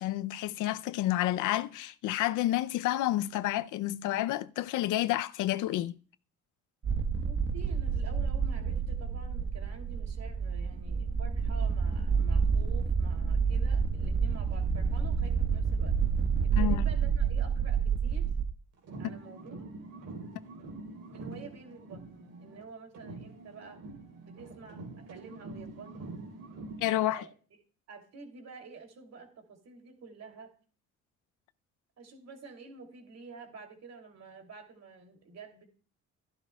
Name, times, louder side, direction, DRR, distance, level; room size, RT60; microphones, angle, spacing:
voice 1, 0.0-6.0 16.5-16.8 26.8-27.2, left 14 dB, 85° left, 0.5 m, -30 dB
sound 1, 6.8-18.4, right 6 dB, 40° right, 1.2 m, -29 dB
voice 2, 7.2-16.0 16.4-18.3 19.0-19.7 21.1-23.8 24.3-26.3 26.8-27.3 27.9-30.5 32.0-35.7, right 4 dB, 60° right, 2.7 m, -49 dB
sound 2, 18.8-22.7 22.9-26.9, right 2 dB, 80° right, 3.6 m, -45 dB
14.0 x 11.0 x 2.2 m
cardioid pair, 90°, 30 cm